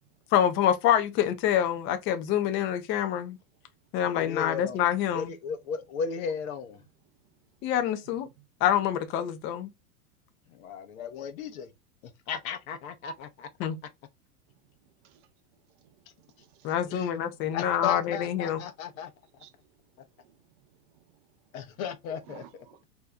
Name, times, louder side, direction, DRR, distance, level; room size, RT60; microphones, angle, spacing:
voice 1, 0.3-3.4 3.9-5.3 7.6-8.3 8.6-9.7 13.6-13.8 16.6-18.6, left 10 dB, 30° left, 0.4 m, -26 dB
voice 2, 4.1-4.9 5.1-6.8 10.5-11.7 12.3-13.5 16.9-17.2 17.5-19.1 21.5-22.4, left 6 dB, 65° left, 0.9 m, -35 dB
voice 3, 15.8-16.9 19.4-19.5 20.2-20.4 22.3-22.8, right 11 dB, 40° right, 0.4 m, -55 dB
2.8 x 2.2 x 3.5 m
hypercardioid pair, 120°, 45 cm